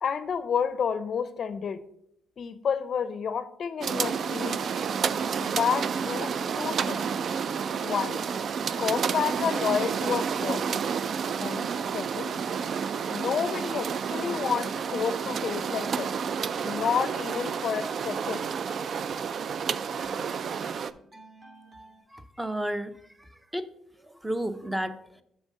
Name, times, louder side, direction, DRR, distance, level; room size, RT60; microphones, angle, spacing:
voice 1, 0.0-1.8 2.4-4.6 5.4-7.0 7.8-8.2 8.8-10.7 11.4-11.6 11.9-12.4 13.1-16.1 16.6-18.5, left 7 dB, 55° left, 0.5 m, -30 dB
sound 1, 3.8-20.9, right 6 dB, 55° right, 0.3 m, -30 dB
sound 2, 19.3-22.0, right 2 dB, 30° right, 1.8 m, -53 dB
voice 2, 22.1-22.9 23.2-23.7 24.0-25.2, right 1 dB, 10° right, 0.6 m, -32 dB
7.1 x 4.5 x 5.2 m
cardioid pair, 90°, 0 cm